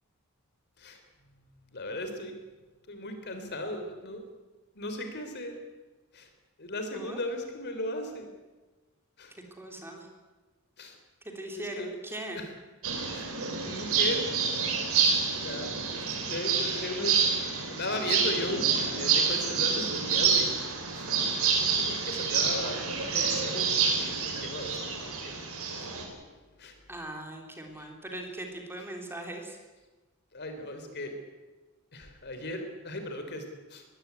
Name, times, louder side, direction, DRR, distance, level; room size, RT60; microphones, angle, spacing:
voice 1, 1.7-2.4 2.9-4.2 4.7-5.6 6.1-6.3 6.6-8.3 9.2-9.3 10.8-11.0 11.5-11.9 12.3-12.5 13.1-13.3 13.6-14.3 14.9-15.1 15.3-15.7 16.2-17.3 17.6-20.6 20.9-21.1 21.8-25.9 26.6-26.8 27.8-27.9 30.3-31.2 31.9-33.9, left 1 dB, 50° left, 6 dB, 3.7 m, -37 dB
voice 2, 9.5-10.1 11.2-12.4 15.8-16.1 26.9-29.6, right 1 dB, 10° right, 2 dB, 3.6 m, -40 dB
sound 1, 12.8-26.0, right 6 dB, 75° right, 4.7 m, -28 dB
21.5 x 16.0 x 9.7 m, 1.2 s
head